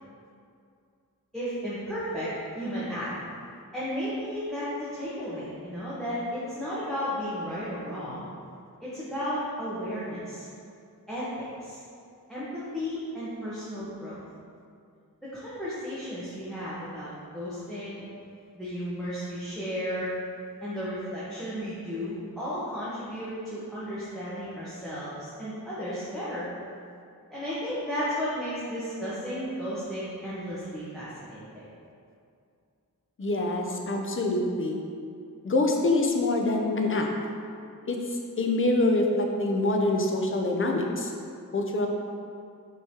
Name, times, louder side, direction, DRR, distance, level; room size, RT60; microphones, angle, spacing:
voice 1, 1.3-3.1 3.7-8.3 8.8-10.5 11.1-11.8 12.3-14.2 15.2-18.1 18.5-20.1 20.6-26.5 27.3-31.7, equal, ahead, -11 dB, 1.0 m, -34 dB
voice 2, 33.2-34.8 35.4-37.1 37.9-38.0 38.4-41.1 41.5-41.9, left 2 dB, 35° left, 2 dB, 0.5 m, -25 dB
5.4 x 3.1 x 2.8 m, 2.4 s
wide cardioid pair, 65°, 35 cm